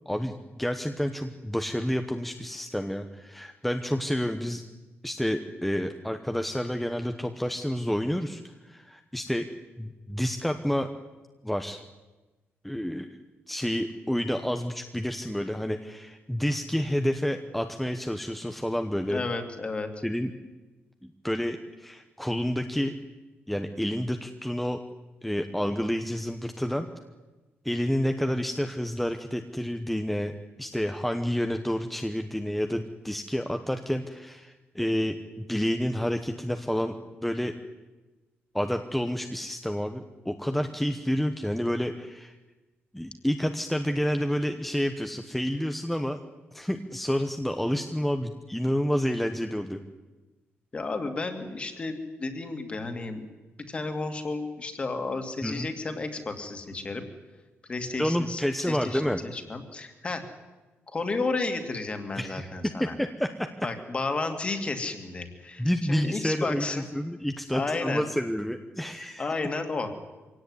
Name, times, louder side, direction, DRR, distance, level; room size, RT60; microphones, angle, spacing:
voice 1, 0.1-4.6 5.0-9.5 9.8-10.9 11.4-11.8 12.6-13.2 13.5-19.2 20.0-20.3 21.0-22.9 23.5-24.8 25.2-26.9 27.6-30.3 30.6-37.0 37.2-37.5 38.5-42.4 42.9-46.2 46.5-49.8 55.4-55.7 58.0-59.2 62.2-62.5 62.8-63.5 65.6-69.3, equal, 5° left, 6 dB, 1.0 m, -29 dB
voice 2, 19.1-19.9 50.7-53.3 53.7-57.1 57.7-60.2 60.9-62.9 63.6-66.9 67.5-68.1 69.2-69.9, left 3 dB, 25° left, 7 dB, 2.5 m, -32 dB
24.5 x 17.5 x 9.7 m, 1.2 s
wide cardioid pair, 160°, 4 cm